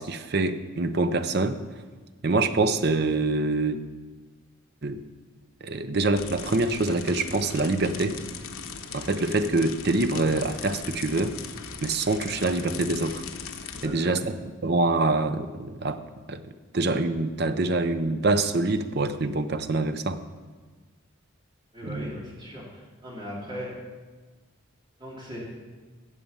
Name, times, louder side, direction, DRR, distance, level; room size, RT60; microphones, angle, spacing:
voice 1, 0.0-1.6 2.2-3.8 4.8-5.0 5.6-8.2 8.9-11.4 11.8-13.2 13.8-14.2 14.6-16.0 16.3-16.4 16.7-20.2 21.9-22.1, right 2 dB, 50° right, 10 dB, 0.7 m, -25 dB
sound 1, 6.2-13.9, left 6 dB, 85° left, 1.0 m, -39 dB
voice 2, 13.8-14.1 21.7-23.7 25.0-25.4, equal, 25° right, -6 dB, 3.7 m, -38 dB
16.0 x 6.7 x 5.5 m, 1.4 s
head